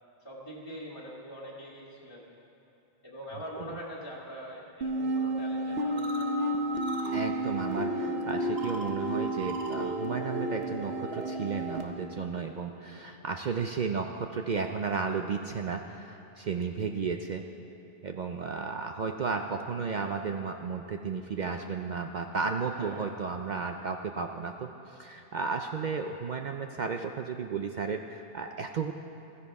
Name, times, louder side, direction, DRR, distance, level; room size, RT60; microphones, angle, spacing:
voice 1, 0.2-2.3 3.0-6.7 12.8-13.1 22.7-23.0, equal, 25° left, -7 dB, 1.8 m, -43 dB
sound 1, 4.8-11.8, right 1 dB, 75° right, 1.3 m, -31 dB
voice 2, 7.1-17.4 18.0-28.9, right 5 dB, 55° right, 4 dB, 0.6 m, -33 dB
15.5 x 14.0 x 4.7 m, 2.9 s
omnidirectional pair, 1.0 m